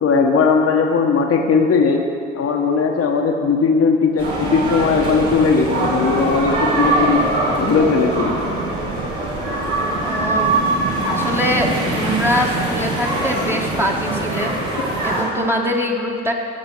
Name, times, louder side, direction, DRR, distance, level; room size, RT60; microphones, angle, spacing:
voice 1, 0.0-2.0 2.3-7.2 7.6-8.4, left 5 dB, 40° left, 2 dB, 1.3 m, -17 dB
sound 1, 4.2-15.2, right 2 dB, 80° right, 3.1 m, -22 dB
voice 2, 10.0-14.5 15.0-16.3, equal, 5° right, -1 dB, 1.4 m, -23 dB
15.0 x 6.6 x 6.1 m, 2.4 s
figure-of-eight pair, 50°, 36 cm